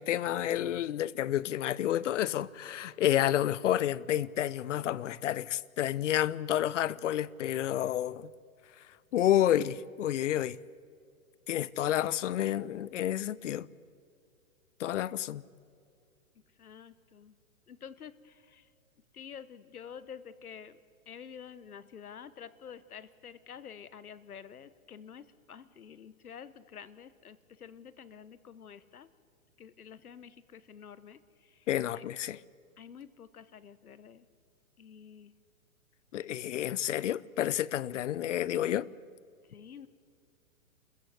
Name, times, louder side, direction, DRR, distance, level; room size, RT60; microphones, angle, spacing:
voice 1, 0.0-8.3 9.1-10.6 11.5-13.7 14.8-15.4 31.7-32.4 36.1-38.9, left 12 dB, 60° left, 0.7 m, -30 dB
voice 2, 16.6-17.3 17.7-18.7 19.1-20.8 21.1-29.1 29.6-31.7 31.9-32.0 32.8-34.3 34.8-35.3 39.5-39.9, left 7 dB, 90° left, 1.2 m, -49 dB
28.0 x 14.5 x 8.0 m
hypercardioid pair, 140°, 43 cm